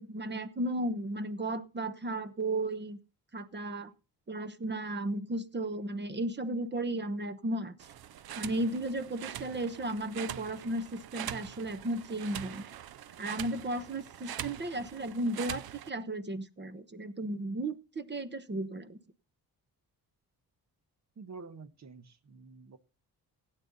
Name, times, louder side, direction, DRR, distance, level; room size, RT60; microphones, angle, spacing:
voice 1, 0.0-3.0 3.3-3.9 4.3-7.9 8.4-12.7 13.2-19.0, right 1 dB, 25° right, 13 dB, 1.0 m, -34 dB
sound 1, 7.8-15.9, right 11 dB, 70° right, 0.7 m, -43 dB
voice 2, 21.2-22.8, right 4 dB, 45° right, 13 dB, 1.2 m, -48 dB
16.5 x 9.0 x 4.0 m, 0.32 s
cardioid pair, 115°, 39 cm